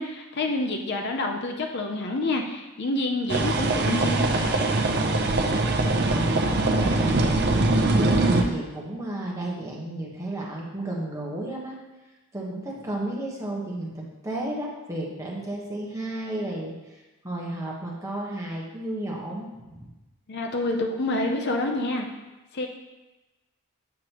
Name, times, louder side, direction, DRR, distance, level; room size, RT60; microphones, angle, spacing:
voice 1, 0.0-4.7 20.3-22.1 22.5-22.7, left 2 dB, 50° left, 3 dB, 0.6 m, -28 dB
sound 1, 3.3-8.4, right 2 dB, 50° right, 0.6 m, -22 dB
voice 2, 6.1-7.3 7.9-11.8 12.3-19.9, right 1 dB, 15° right, -3 dB, 1.2 m, -33 dB
7.9 x 6.2 x 3.0 m, 1.1 s
head